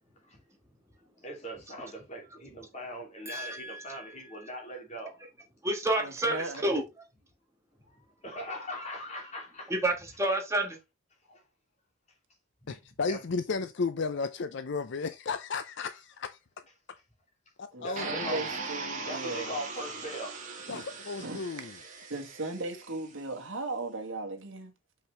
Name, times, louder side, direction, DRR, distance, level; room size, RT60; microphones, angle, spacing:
voice 1, 1.2-5.2 7.8-9.7 11.3-11.4 12.6-12.7 13.1-13.2 17.8-18.4 19.0-20.4, equal, 35° left, 2.8 m, -40 dB
voice 2, 3.3-4.0 5.6-6.8 9.7-10.8, right 1 dB, 15° right, 1.5 m, -29 dB
voice 3, 6.0-6.8 17.7-19.5 20.7-20.8 21.2-21.4 22.1-24.7, right 2 dB, 65° right, 1.6 m, -37 dB
voice 4, 12.7-16.4 16.9-17.0 17.6-18.5 20.7-21.7, left 4 dB, 60° left, 0.5 m, -34 dB
sound 1, 18.0-23.0, right 4 dB, 35° right, 1.9 m, -39 dB
5.8 x 5.6 x 3.3 m
head